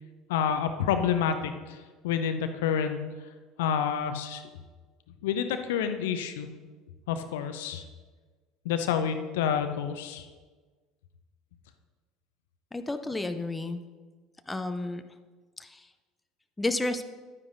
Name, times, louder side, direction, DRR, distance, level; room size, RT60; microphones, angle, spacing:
voice 1, 0.3-1.8 2.0-3.0 3.6-4.4 5.2-6.5 7.1-7.8 8.6-10.2, left 8 dB, 65° left, 8 dB, 0.6 m, -28 dB
voice 2, 12.7-13.8 14.5-15.0 15.6-15.9 16.6-17.1, left 2 dB, 10° left, 9 dB, 0.6 m, -31 dB
11.0 x 9.6 x 2.6 m, 1.4 s
figure-of-eight pair, 65°, 0 cm